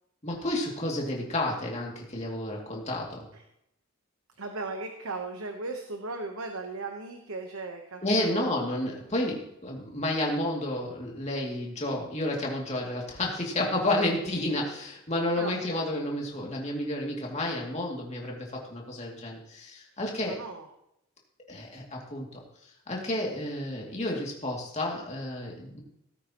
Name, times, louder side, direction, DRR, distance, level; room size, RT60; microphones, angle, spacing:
voice 1, 0.2-3.3 8.0-20.4 21.5-25.8, left 1 dB, 30° left, -1 dB, 2.5 m, -31 dB
voice 2, 4.4-8.7 15.4-15.8 20.3-20.7, right 3 dB, 80° right, 4 dB, 1.1 m, -37 dB
17.5 x 9.4 x 3.0 m, 0.80 s
head